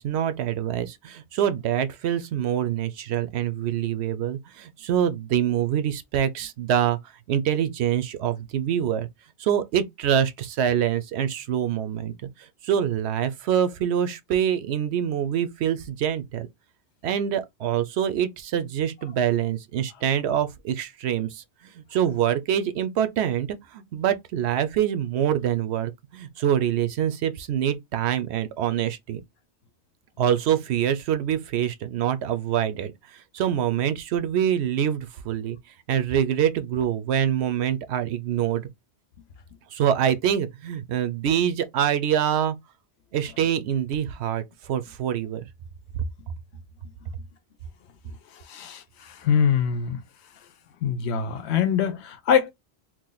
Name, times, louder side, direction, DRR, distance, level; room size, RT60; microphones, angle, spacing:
voice 1, 0.0-7.0 7.3-9.1 9.4-12.1 12.4-16.5 17.0-21.4 21.7-29.2 30.2-35.6 35.9-38.7 39.7-42.6 43.1-45.4, right 9 dB, 75° right, 0.8 m, -25 dB
voice 2, 48.5-50.0 50.8-52.5, left 7 dB, 75° left, 0.9 m, -24 dB
3.0 x 2.5 x 3.8 m
omnidirectional pair, 1.1 m